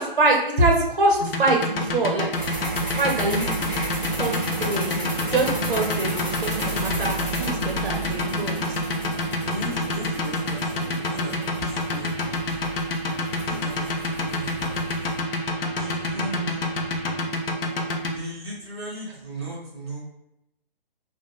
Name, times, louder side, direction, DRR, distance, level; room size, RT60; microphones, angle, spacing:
voice 1, 0.0-2.3 3.0-3.8 4.2-5.0 5.3-8.7, right 2 dB, 60° right, 0 dB, 0.6 m, -24 dB
sound 1, 1.2-18.1, left 2 dB, 70° left, 0.5 m, -27 dB
sound 2, 2.3-15.2, right 2 dB, 10° left, 0.5 m, -33 dB
sound 3, 4.0-17.2, left 3 dB, 40° left, 0.8 m, -42 dB
voice 2, 9.5-12.6 13.2-14.9 15.8-17.4 18.1-20.0, right 1 dB, 25° right, -6 dB, 0.7 m, -37 dB
2.7 x 2.0 x 2.5 m, 0.85 s
figure-of-eight pair, 140°, 30 cm